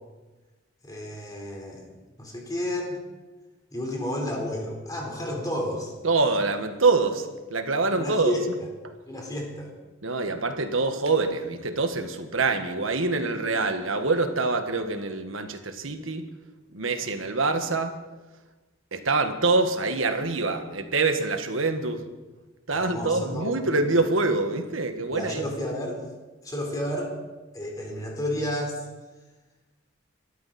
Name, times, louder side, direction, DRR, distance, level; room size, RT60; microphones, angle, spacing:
voice 1, 0.8-1.8 2.2-3.0 3.7-5.9 7.9-8.5 9.1-9.7 22.7-23.8 25.1-26.0 26.4-27.1 27.5-28.9, left 1 dB, 20° left, 0 dB, 4.2 m, -31 dB
voice 2, 6.0-8.4 8.8-8.9 10.0-16.3 16.7-18.0 18.9-22.1 22.7-25.4, right 3 dB, 85° right, 7 dB, 1.6 m, -25 dB
24.0 x 13.0 x 4.3 m, 1.2 s
head